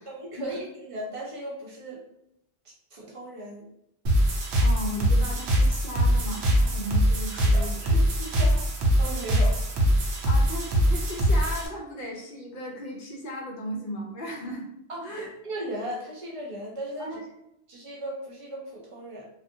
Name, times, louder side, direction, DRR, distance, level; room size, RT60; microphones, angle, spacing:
voice 1, 0.0-2.0 2.6-3.6 7.3-8.6 9.0-9.6 14.9-17.2 17.7-19.3, right 1 dB, 35° right, -3 dB, 0.6 m, -37 dB
sound 1, 4.1-11.7, equal, 75° right, 0.8 m, -22 dB
voice 2, 4.6-7.7 10.2-14.7 15.0-15.3 17.0-17.3, equal, 55° left, -2 dB, 0.7 m, -36 dB
2.4 x 2.1 x 2.6 m, 0.78 s
omnidirectional pair, 1.2 m